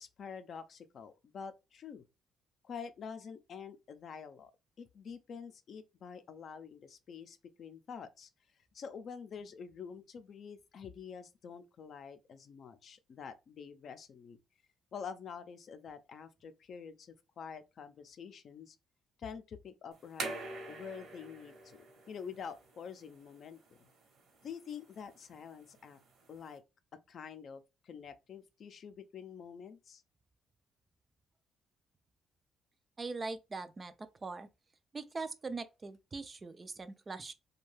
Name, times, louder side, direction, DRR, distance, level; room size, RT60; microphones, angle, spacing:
voice 1, 0.0-2.0 2.6-4.5 4.8-8.3 8.7-14.4 14.9-18.8 19.2-20.3 20.7-23.6 24.4-26.0 26.3-26.6 27.1-30.0, left 6 dB, 60° left, 0.4 m, -47 dB
sound 1, 19.9-26.6, right 3 dB, 70° right, 1.0 m, -47 dB
voice 2, 33.0-34.5 34.9-37.3, right 3 dB, 30° right, 0.3 m, -41 dB
2.6 x 2.2 x 3.1 m
cardioid pair, 90°, 0 cm